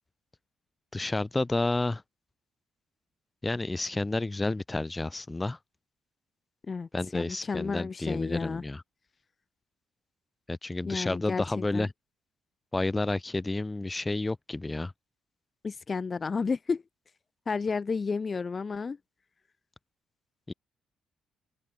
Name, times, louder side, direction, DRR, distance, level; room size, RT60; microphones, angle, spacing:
voice 1, 0.9-2.0 3.4-5.6 6.9-8.8 10.5-11.9 12.7-14.9 20.5-20.6, left 2 dB, 15° left, 2.1 m, -30 dB
voice 2, 6.7-8.6 10.8-11.9 15.6-16.8 17.5-19.0, left 4 dB, 35° left, 1.6 m, -32 dB
open air
cardioid pair, 90°, 0 cm